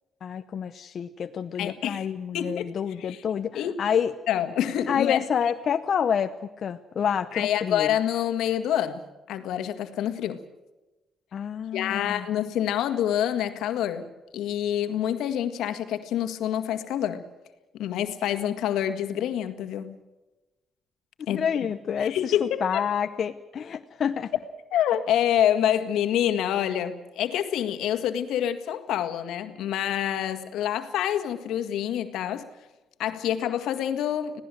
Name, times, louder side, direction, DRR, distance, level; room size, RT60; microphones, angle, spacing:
voice 1, 0.2-4.1 4.9-7.9 11.3-12.3 21.3-24.3, left 7 dB, 55° left, 0.9 m, -28 dB
voice 2, 1.6-2.1 2.3-2.7 3.0-3.2 3.5-3.8 4.3-5.2 7.3-9.0 9.3-10.4 11.7-17.2 17.8-20.0 21.3-21.7 22.0-22.8 24.7-32.5 33.0-34.4, left 10 dB, 85° left, 1.8 m, -27 dB
26.0 x 17.5 x 7.7 m
cardioid pair, 90°, 0 cm